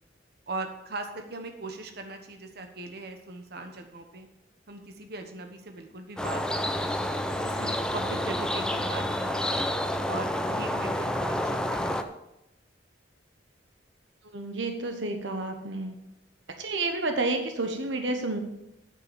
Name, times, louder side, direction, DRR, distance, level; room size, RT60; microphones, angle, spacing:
voice 1, 0.5-4.3 4.7-6.9 7.4-9.7 10.1-12.0, right 2 dB, 60° right, 5 dB, 1.2 m, -40 dB
sound 1, 6.2-12.0, left 1 dB, 5° left, 0.6 m, -29 dB
voice 2, 14.3-15.9 16.6-18.4, right 2 dB, 80° right, 5 dB, 1.1 m, -30 dB
8.8 x 6.8 x 7.0 m, 0.87 s
head